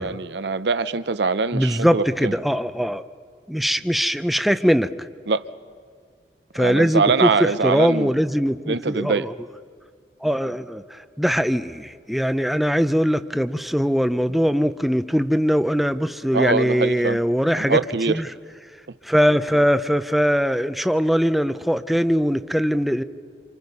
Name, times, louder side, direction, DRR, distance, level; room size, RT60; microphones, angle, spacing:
voice 1, 0.0-2.3 5.3-5.4 6.6-8.1 8.7-9.3 16.3-17.2 17.6-18.2, right 4 dB, 75° right, 0.7 m, -23 dB
voice 2, 1.5-3.0 3.5-5.1 6.5-9.3 10.2-17.8 18.1-18.3 19.0-23.0, equal, ahead, 0.5 m, -21 dB
27.5 x 27.0 x 5.4 m
head